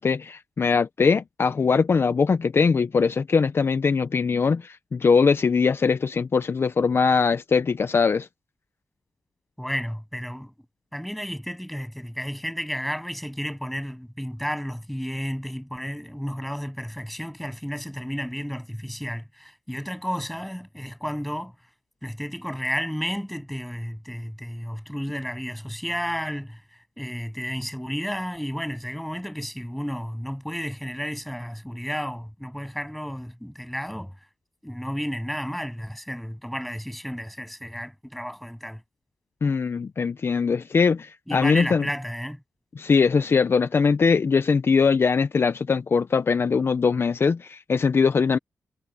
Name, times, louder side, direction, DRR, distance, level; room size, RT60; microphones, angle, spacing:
voice 1, 0.0-8.3 39.4-41.9 42.8-48.4, left 5 dB, 45° left, 0.6 m, -21 dB
voice 2, 9.6-10.5 10.9-21.5 22.0-26.6 27.0-34.1 34.6-38.8 41.3-42.4, equal, ahead, 8.0 m, -32 dB
wide cardioid pair, 95°, 5 cm